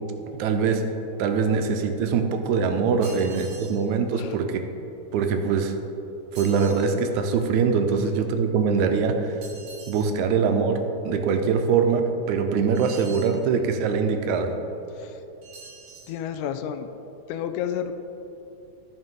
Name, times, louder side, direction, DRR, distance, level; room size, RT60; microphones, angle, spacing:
voice 1, 0.3-0.8 1.2-4.6 5.1-5.7 6.3-9.3 9.9-14.5, right 5 dB, 85° right, 6 dB, 2.0 m, -23 dB
sound 1, 3.0-3.8 6.3-6.9 9.4-10.1 12.7-13.4 15.4-16.1, right 3 dB, 50° right, 1.4 m, -44 dB
voice 2, 16.1-16.9 17.3-17.9, left 9 dB, 90° left, 9 dB, 2.0 m, -31 dB
14.0 x 5.5 x 3.7 m, 2.9 s
omnidirectional pair, 3.4 m